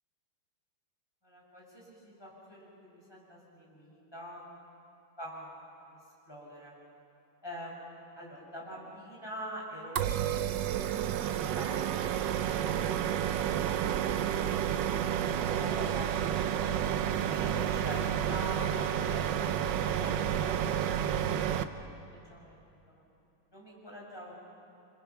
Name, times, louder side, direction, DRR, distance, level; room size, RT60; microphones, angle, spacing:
voice 1, 1.2-4.4 5.2-6.0 6.3-6.7 7.4-7.7 8.2-10.6 11.2-12.1 15.4-16.1 16.6-16.9 17.3-21.3 21.6-22.6 22.9-23.0 23.5-24.4, equal, 10° left, -4 dB, 6.6 m, -45 dB
sound 1, 10.0-21.6, right 10 dB, 65° right, 1.3 m, -30 dB
29.0 x 25.5 x 5.9 m, 2.8 s
omnidirectional pair, 2.4 m